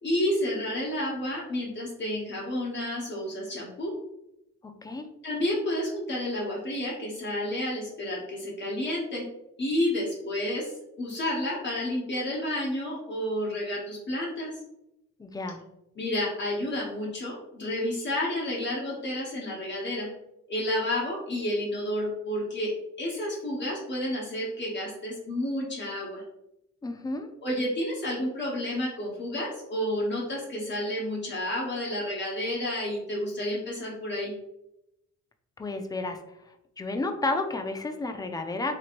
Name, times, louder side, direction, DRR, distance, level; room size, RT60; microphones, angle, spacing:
voice 1, 0.0-3.9 5.2-9.3 9.6-14.5 16.0-20.1 20.5-26.2 27.4-34.3, left 1 dB, 40° left, -5 dB, 1.0 m, -30 dB
voice 2, 4.6-5.1 15.2-15.6 26.8-27.3 35.6-36.2 36.8-38.8, left 2 dB, 15° left, 6 dB, 0.3 m, -31 dB
3.0 x 3.0 x 2.4 m, 0.86 s
cardioid pair, 90°, 30 cm